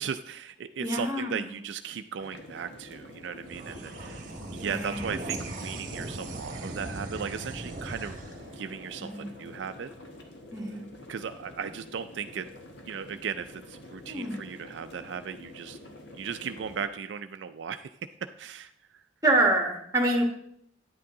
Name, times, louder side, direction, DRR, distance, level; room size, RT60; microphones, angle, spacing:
voice 1, 0.0-4.2 4.5-8.2 8.5-9.9 11.1-12.5 12.9-15.8 16.2-17.9 18.4-18.7, right 7 dB, 70° right, 9 dB, 0.4 m, -36 dB
voice 2, 0.8-1.6 4.6-5.0 9.0-9.3 10.5-10.8 14.1-14.4 19.2-20.2, right 2 dB, 20° right, 2 dB, 1.5 m, -26 dB
sound 1, 2.2-16.9, left 1 dB, 70° left, 1.3 m, -48 dB
sound 2, 3.4-10.2, right 2 dB, 45° right, 1.1 m, -40 dB
10.0 x 8.6 x 3.7 m, 0.70 s
head